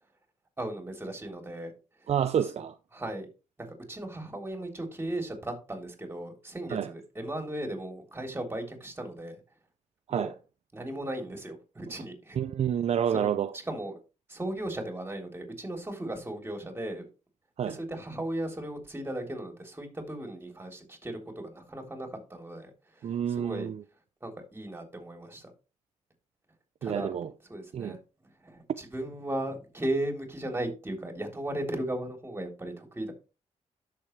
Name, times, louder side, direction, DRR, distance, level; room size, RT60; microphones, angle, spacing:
voice 1, 0.6-1.7 2.9-3.3 3.6-9.4 10.1-10.3 10.7-12.4 13.1-13.3 13.7-13.9 14.3-17.0 17.7-22.7 23.0-23.7 24.2-25.4 26.8-27.2 27.5-28.0 28.4-33.1, right 1 dB, 15° right, 3.5 m, -36 dB
voice 2, 2.1-2.8 6.7-6.9 10.1-10.3 12.4-13.6 17.6-17.8 23.0-23.8 26.8-27.3 27.7-28.0, right 9 dB, 55° right, 0.6 m, -29 dB
10.5 x 6.8 x 3.3 m
cardioid pair, 90°, 13 cm